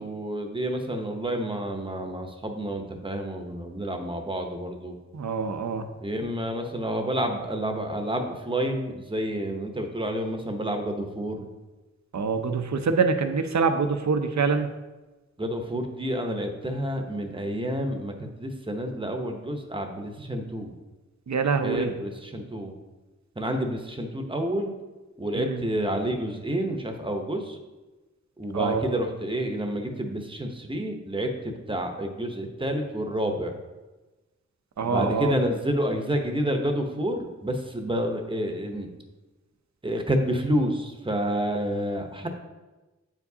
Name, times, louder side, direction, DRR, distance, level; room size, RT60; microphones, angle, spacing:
voice 1, 0.0-5.0 6.0-11.5 15.4-18.1 18.4-20.7 21.6-22.7 23.4-24.7 25.2-27.6 28.4-33.5 34.8-38.9 39.8-42.3, equal, 15° right, 4 dB, 0.8 m, -29 dB
voice 2, 5.1-5.9 12.1-14.7 21.3-21.9 25.4-25.7 28.5-28.8 34.8-35.3, right 5 dB, 70° right, 8 dB, 0.6 m, -25 dB
8.7 x 4.7 x 2.8 m, 1.2 s
wide cardioid pair, 70°, 29 cm